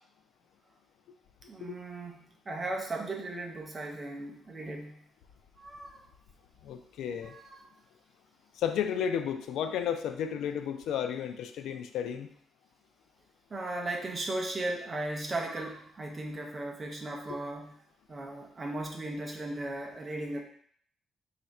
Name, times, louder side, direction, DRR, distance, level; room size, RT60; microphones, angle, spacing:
voice 1, 1.5-2.2 2.5-5.0 5.6-6.0 7.2-7.6 13.5-17.7 18.1-20.4, right 2 dB, 20° right, 1 dB, 0.5 m, -36 dB
voice 2, 6.6-7.3 8.6-12.3, left 8 dB, 75° left, 8 dB, 0.3 m, -33 dB
3.3 x 2.4 x 4.1 m, 0.62 s
cardioid pair, 160°, 0 cm